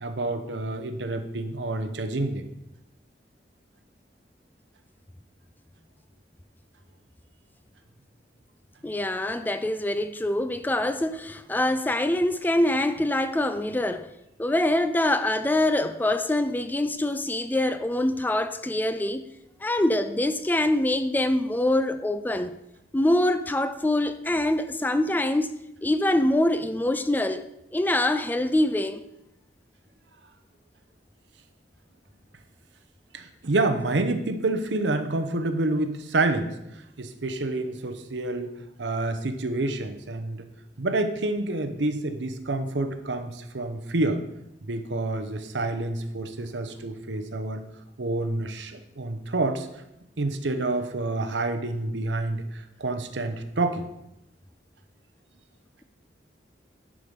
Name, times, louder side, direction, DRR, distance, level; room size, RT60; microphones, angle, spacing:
voice 1, 0.0-2.5 33.1-36.5 37.0-40.5 40.8-44.2 44.6-47.6 48.0-49.7 50.2-53.9, right 2 dB, 90° right, 0.9 m, -28 dB
voice 2, 8.8-14.1 14.4-19.3 19.6-22.5 22.9-25.5 25.8-29.0, left 1 dB, 10° left, 0.4 m, -24 dB
11.0 x 5.0 x 5.2 m
head